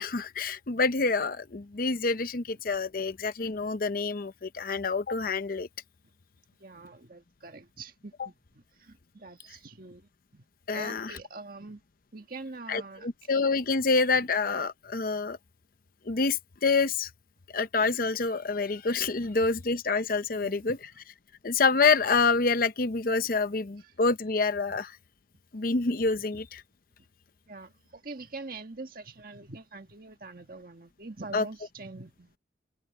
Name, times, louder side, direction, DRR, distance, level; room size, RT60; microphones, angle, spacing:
voice 1, 0.0-5.7 8.2-8.3 10.7-11.2 12.7-15.4 16.1-17.1 17.5-20.8 21.4-25.0 25.5-26.6 31.3-31.4, left 4 dB, 50° left, 0.7 m, -27 dB
voice 2, 6.6-8.3 8.7-10.4 10.7-11.8 12.1-13.1 20.3-20.8 27.5-32.4, right 3 dB, 50° right, 1.6 m, -44 dB
head